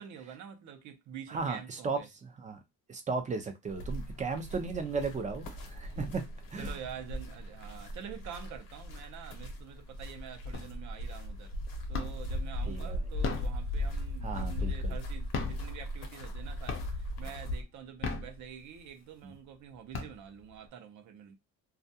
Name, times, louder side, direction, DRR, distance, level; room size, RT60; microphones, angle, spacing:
voice 1, 0.0-2.1 6.6-11.6 11.9-21.4, right 8 dB, 55° right, 0.6 m, -47 dB
voice 2, 1.3-2.6 2.9-6.2 6.5-6.8 12.7-13.0 14.2-15.0 19.2-19.3, right 4 dB, 20° right, 0.4 m, -36 dB
sound 1, 3.7-17.6, left 1 dB, 70° left, 0.9 m, -38 dB
sound 2, 10.5-11.0 11.4-12.4 13.0-14.8 15.2-16.4 16.7-17.2 17.8-18.9 19.4-19.5 19.7-20.6, left 4 dB, 35° left, 0.5 m, -37 dB
2.4 x 2.2 x 2.6 m
cardioid pair, 155°, 34 cm